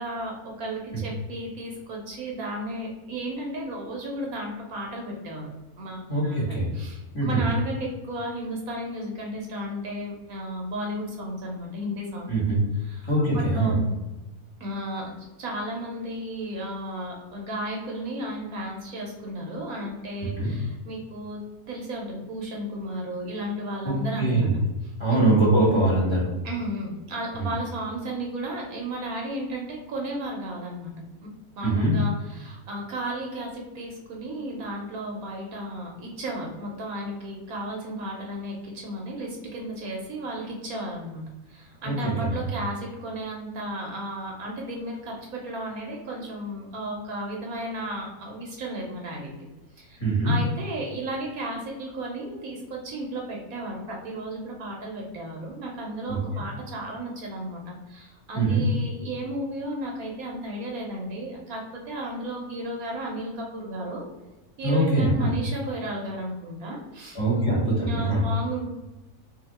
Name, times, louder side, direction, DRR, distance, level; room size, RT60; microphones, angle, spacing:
voice 1, 0.0-5.5 5.8-12.3 12.8-13.1 13.3-13.9 14.6-21.4 21.7-24.5 24.8-25.3 26.4-30.9 31.6-41.2 41.5-49.3 49.7-64.1 64.6-67.2 67.9-68.7, right 1 dB, 70° right, -1 dB, 1.1 m, -34 dB
voice 2, 6.1-6.7 7.1-7.4 12.3-12.6 13.1-13.8 20.4-20.5 23.8-24.6 25.0-26.3 27.4-27.5 31.6-31.9 41.8-42.3 50.0-50.3 56.1-56.4 58.3-58.6 64.6-65.3 67.1-68.2, right 2 dB, 20° left, -6 dB, 1.4 m, -23 dB
2.8 x 2.7 x 4.0 m, 1.1 s
omnidirectional pair, 1.7 m